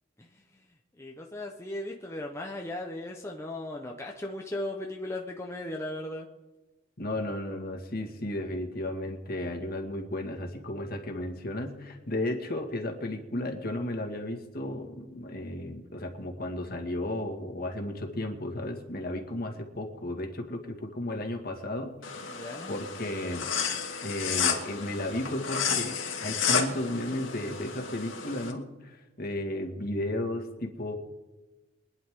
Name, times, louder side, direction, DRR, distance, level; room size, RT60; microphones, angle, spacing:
voice 1, 1.0-6.3 22.2-22.7, left 1 dB, 15° left, 1 dB, 0.9 m, -37 dB
voice 2, 7.0-22.2 22.7-23.5 24.0-30.9, left 1 dB, 50° left, 3 dB, 2.1 m, -34 dB
sound 1, 22.0-28.5, left 6 dB, 85° left, 2.4 m, -31 dB
24.5 x 10.5 x 3.8 m, 1.1 s
head